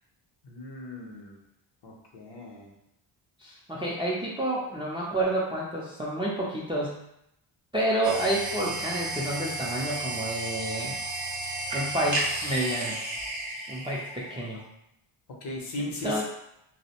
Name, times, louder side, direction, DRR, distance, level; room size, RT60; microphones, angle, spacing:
voice 1, 0.4-1.4 1.8-2.7 15.4-16.2, left 1 dB, 55° left, 0 dB, 0.7 m, -37 dB
voice 2, 3.4-7.0 7.7-10.9 11.7-13.0 13.7-14.6 15.8-16.2, right 1 dB, 10° right, -5 dB, 0.4 m, -29 dB
sound 1, 8.0-14.6, right 2 dB, 40° right, 0.7 m, -33 dB
2.4 x 2.0 x 2.8 m, 0.79 s
cardioid pair, 100°, 50 cm